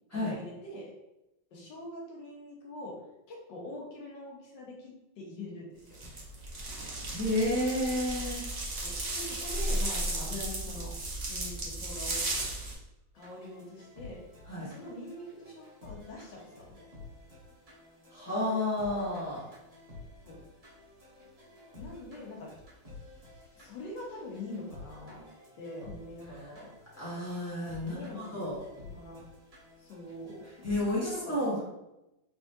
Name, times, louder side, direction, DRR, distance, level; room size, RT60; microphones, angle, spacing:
voice 1, 0.1-0.9 1.5-2.9 3.3-6.0 8.8-12.2 13.1-14.2 14.6-16.8 20.2-20.4 21.8-22.5 23.6-25.2 25.6-26.7 27.8-28.5 28.8-29.2 29.8-30.5 30.9-31.4, left 1 dB, 85° left, -2 dB, 1.6 m, -44 dB
sound 1, 5.9-12.7, right 2 dB, 45° right, 0.5 m, -34 dB
voice 2, 7.1-8.4 14.5-14.7 18.1-19.5 27.0-28.6 30.6-31.6, left 1 dB, 10° left, -8 dB, 1.1 m, -31 dB
sound 2, 13.1-30.8, left 2 dB, 25° right, 0.9 m, -52 dB
3.6 x 3.4 x 2.7 m, 0.93 s
omnidirectional pair, 1.9 m